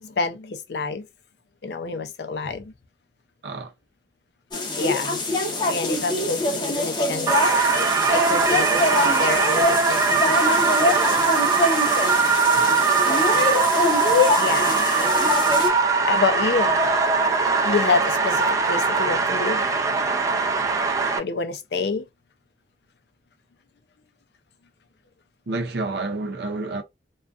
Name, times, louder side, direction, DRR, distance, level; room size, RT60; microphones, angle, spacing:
voice 1, 0.0-1.1 1.6-2.7 4.8-5.2 5.7-10.8 14.4-14.8 16.0-16.8 17.6-19.6 21.2-22.0, left 4 dB, 65° left, 0.4 m, -28 dB
sound 1, 4.5-15.7, left 2 dB, 25° left, 0.6 m, -24 dB
sound 2, 7.3-21.2, right 4 dB, 20° right, 0.4 m, -21 dB
voice 2, 25.5-26.8, right 2 dB, 65° right, 0.6 m, -29 dB
2.4 x 2.2 x 2.3 m
head